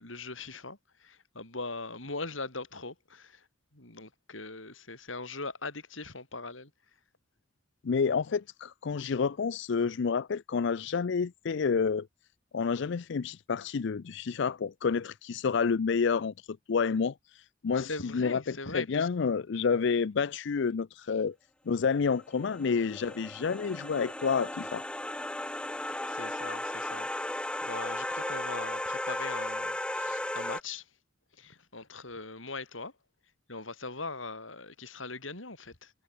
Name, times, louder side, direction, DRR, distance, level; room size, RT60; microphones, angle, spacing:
voice 1, 0.0-3.5 3.7-6.7 17.7-19.1 26.1-30.9 31.4-32.9 33.5-35.9, left 3 dB, 85° left, 6.5 m, -41 dB
voice 2, 7.8-12.1 12.5-21.3 21.7-24.8, left 5 dB, 65° left, 0.5 m, -29 dB
sound 1, 22.2-30.6, left 1 dB, 5° left, 0.7 m, -35 dB
head